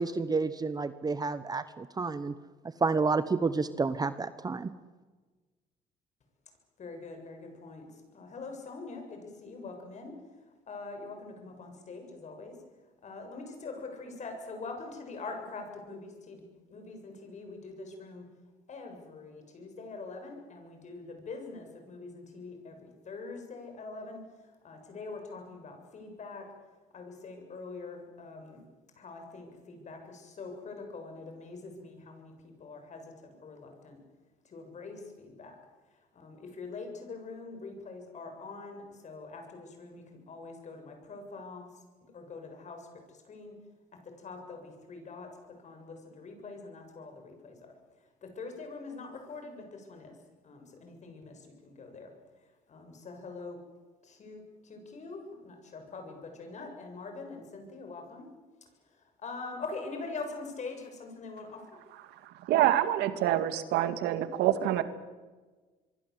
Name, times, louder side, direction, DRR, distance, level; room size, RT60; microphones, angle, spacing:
voice 1, 0.0-2.3 2.8-4.7, right 4 dB, 25° right, 13 dB, 1.0 m, -30 dB
voice 2, 6.8-10.1 10.7-12.6 13.0-18.2 18.7-24.2 24.6-26.5 26.9-28.6 29.0-32.3 32.6-34.0 34.5-35.6 36.1-41.7 42.1-43.5 44.0-45.3 45.6-47.7 48.2-50.1 50.4-52.1 52.7-53.6 54.0-58.3 59.2-61.6, left 3 dB, 45° left, 5 dB, 7.4 m, -44 dB
voice 3, 62.5-64.8, right 12 dB, 85° right, 11 dB, 2.0 m, -26 dB
25.5 x 23.0 x 8.1 m, 1.3 s
cardioid pair, 110°, 17 cm